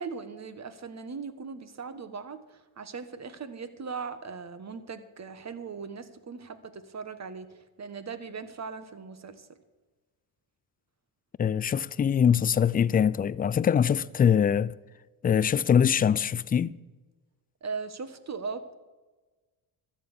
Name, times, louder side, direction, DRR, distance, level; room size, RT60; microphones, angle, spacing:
voice 1, 0.0-7.5 7.8-9.5 17.6-18.7, right 5 dB, 35° right, 1.4 m, -39 dB
voice 2, 11.4-14.7 15.2-16.8, left 8 dB, 20° left, 0.3 m, -23 dB
13.0 x 8.5 x 7.3 m
supercardioid pair, 70°, 49 cm